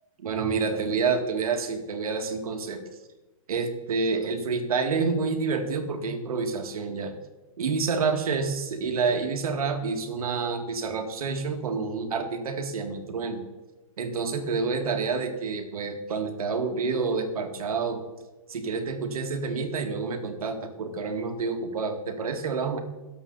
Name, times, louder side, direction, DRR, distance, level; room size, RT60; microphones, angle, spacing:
voice 1, 0.2-2.8 3.5-7.1 7.6-13.4 14.0-18.0 18.5-22.8, right 4 dB, 85° right, 5 dB, 2.3 m, -28 dB
21.5 x 8.1 x 4.1 m, 1.2 s
hypercardioid pair, 145°, 18 cm